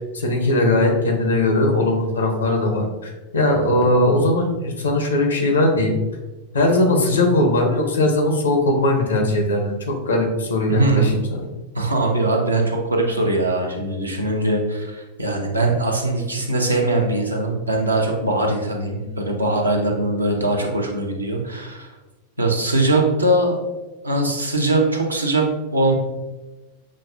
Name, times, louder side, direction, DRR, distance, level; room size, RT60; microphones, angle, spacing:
voice 1, 0.1-6.0 6.5-11.4 19.0-19.2, left 1 dB, 70° left, 2 dB, 0.8 m, -19 dB
voice 2, 10.7-11.2 11.7-21.9 22.4-23.6 24.0-25.9, right 2 dB, 85° right, 0 dB, 0.7 m, -21 dB
6.2 x 2.3 x 2.5 m, 1.1 s
figure-of-eight pair, 90°, 0 cm